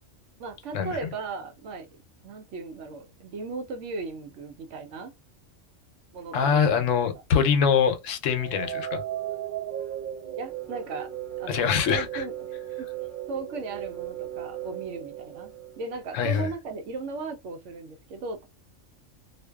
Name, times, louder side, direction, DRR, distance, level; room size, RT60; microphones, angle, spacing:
voice 1, 0.4-1.9 2.2-5.1 6.1-6.8 10.3-11.1 11.4-12.5 12.8-12.9 13.3-18.5, right 4 dB, 70° right, 0.9 m, -37 dB
voice 2, 6.3-9.0 11.5-12.2 16.1-16.5, left 7 dB, 80° left, 0.9 m, -24 dB
sound 1, 8.4-16.3, right 12 dB, 45° right, 0.9 m, -36 dB
2.5 x 2.1 x 2.2 m
omnidirectional pair, 1.3 m